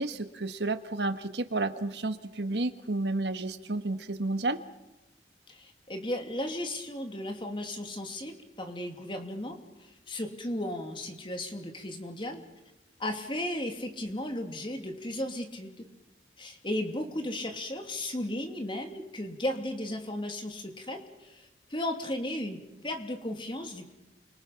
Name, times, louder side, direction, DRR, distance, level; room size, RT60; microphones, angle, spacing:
voice 1, 0.0-4.6, right 2 dB, 75° right, 9 dB, 1.6 m, -31 dB
voice 2, 5.5-12.4 13.0-15.9 16.4-23.9, left 1 dB, 30° left, 4 dB, 2.9 m, -35 dB
29.0 x 25.0 x 5.9 m, 0.99 s
head